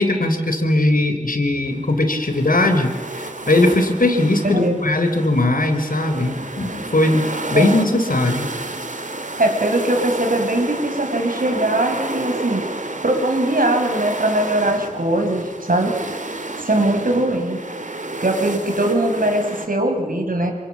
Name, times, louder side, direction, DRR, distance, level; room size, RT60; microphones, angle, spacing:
voice 1, 0.0-2.9 3.2-8.5, left 1 dB, 85° left, 7 dB, 3.7 m, -19 dB
sound 1, 1.7-19.7, right 2 dB, 65° right, 2.8 m, -31 dB
voice 2, 4.4-4.8 7.5-7.8 9.4-12.6 13.0-15.9 16.6-17.6 18.2-20.5, right 1 dB, 80° right, 4 dB, 5.5 m, -20 dB
29.5 x 26.5 x 7.4 m, 1.4 s
wide cardioid pair, 45°, 14 cm